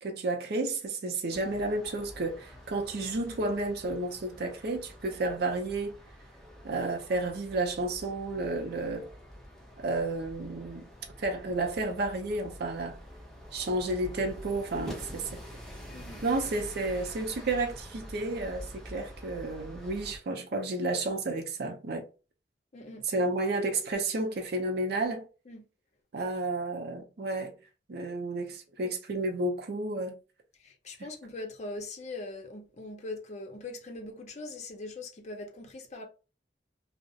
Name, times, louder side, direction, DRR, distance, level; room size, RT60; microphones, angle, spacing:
voice 1, 0.0-5.9 6.6-9.1 9.8-10.9 11.2-13.0 13.5-15.4 16.2-22.0 23.1-25.2 26.1-27.5 27.9-30.2, right 2 dB, 60° right, 0.5 m, -31 dB
sound 1, 1.3-20.2, equal, ahead, 0.6 m, -47 dB
voice 2, 15.9-16.2 22.7-23.1 25.5-25.7 30.6-36.1, left 2 dB, 40° left, 0.6 m, -41 dB
2.4 x 2.0 x 2.7 m
head